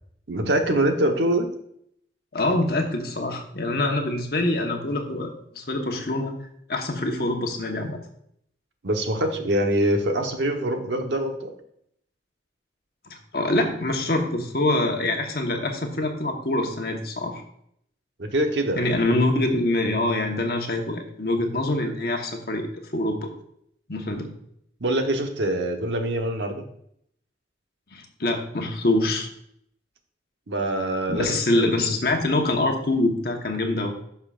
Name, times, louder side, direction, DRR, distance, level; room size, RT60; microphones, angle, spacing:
voice 1, 0.3-1.5 8.8-11.5 18.2-18.8 24.8-26.6 30.5-31.7, right 1 dB, 85° right, 5 dB, 1.0 m, -24 dB
voice 2, 2.3-6.3 6.7-8.0 13.1-17.4 18.7-22.7 22.9-23.3 23.9-24.3 27.9-29.3 31.1-33.9, left 2 dB, 60° left, 3 dB, 1.1 m, -25 dB
11.5 x 5.6 x 2.4 m, 0.70 s
head